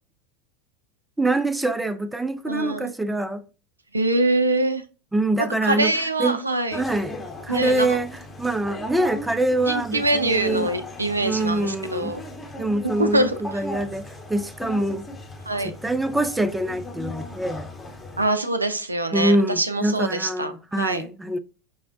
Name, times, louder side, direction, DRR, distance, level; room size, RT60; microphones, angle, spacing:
voice 1, 1.2-3.4 5.1-5.9 6.2-6.4 6.7-8.1 8.4-10.7 11.2-12.1 12.6-15.1 15.6-17.7 19.1-21.4, right 1 dB, 5° right, 0.3 m, -25 dB
voice 2, 2.5-2.9 3.9-4.8 5.6-6.8 7.5-8.0 9.6-12.2 13.0-13.6 15.5-15.7 18.2-21.1, right 2 dB, 85° right, 0.4 m, -24 dB
sound 1, 6.7-18.3, left 1 dB, 15° left, 0.8 m, -38 dB
5.3 x 2.0 x 2.5 m
figure-of-eight pair, 80°, 0 cm